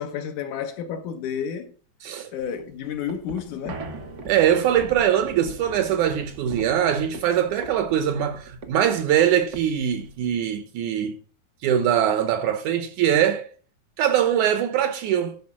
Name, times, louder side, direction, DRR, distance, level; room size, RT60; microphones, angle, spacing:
voice 1, 0.0-1.7 2.3-3.9, left 8 dB, 70° left, 2.2 m, -31 dB
sound 1, 2.4-10.6, right 3 dB, 90° right, 0.9 m, -40 dB
voice 2, 4.3-11.2 11.6-13.5 14.0-15.4, right 10 dB, 70° right, 2.0 m, -22 dB
12.0 x 5.2 x 5.9 m
omnidirectional pair, 4.1 m